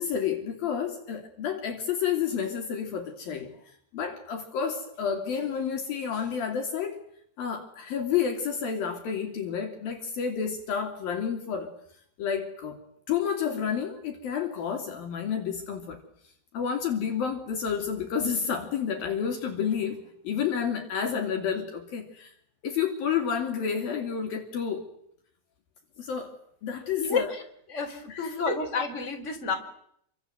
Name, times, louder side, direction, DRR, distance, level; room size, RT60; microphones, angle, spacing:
voice 1, 0.0-3.5 3.9-7.0 7.4-11.7 12.2-12.8 13.1-16.0 16.5-22.3 22.6-24.8 26.0-26.3 26.6-27.3 28.1-28.6, left 7 dB, 60° left, 4 dB, 4.1 m, -30 dB
voice 2, 27.0-27.4 27.7-29.5, left 5 dB, 15° left, 3 dB, 4.3 m, -30 dB
29.0 x 25.0 x 7.9 m, 0.69 s
omnidirectional pair, 4.9 m